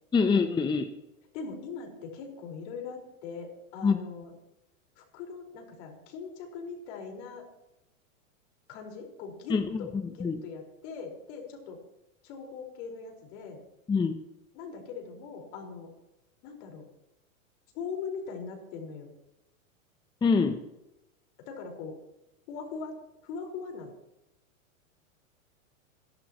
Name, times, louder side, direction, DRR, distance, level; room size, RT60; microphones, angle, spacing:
voice 1, 0.1-0.9 3.8-4.0 9.5-10.4 13.9-14.2 20.2-20.6, left 5 dB, 10° left, 7 dB, 0.7 m, -25 dB
voice 2, 1.3-4.3 5.0-7.5 8.7-11.8 12.2-13.6 14.5-15.9 16.4-16.9 17.7-19.1 21.5-22.0 22.5-23.0 23.2-23.9, left 5 dB, 55° left, 1 dB, 5.0 m, -41 dB
26.0 x 12.0 x 3.1 m, 0.92 s
hypercardioid pair, 120°, 41 cm